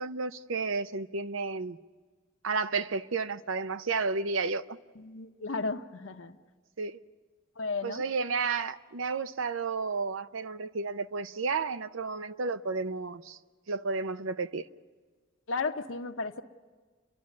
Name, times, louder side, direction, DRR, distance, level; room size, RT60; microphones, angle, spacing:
voice 1, 0.0-1.8 2.4-4.8 6.8-7.0 7.8-13.4 13.7-14.6, right 4 dB, 85° right, 0.7 m, -32 dB
voice 2, 5.0-6.4 7.6-8.0 15.5-16.4, left 4 dB, 75° left, 1.0 m, -34 dB
29.5 x 11.5 x 9.5 m
head